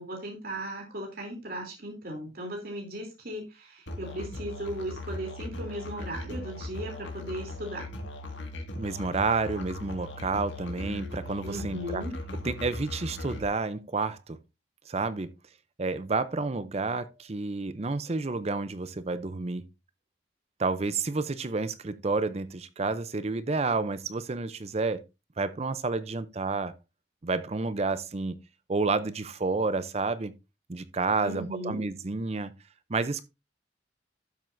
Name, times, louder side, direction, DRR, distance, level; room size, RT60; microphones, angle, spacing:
voice 1, 0.0-7.9 11.4-12.1 31.2-31.8, right 1 dB, 50° right, 3.1 m, -37 dB
Musical instrument, 3.9-13.5, left 1 dB, 75° left, 1.9 m, -38 dB
voice 2, 8.8-12.0 12.4-14.4 14.9-15.3 15.8-19.6 20.6-25.0 25.4-26.8 27.2-28.4 28.7-30.3 30.7-32.5 32.9-33.2, right 3 dB, 35° right, 0.5 m, -30 dB
12.5 x 7.5 x 2.6 m
head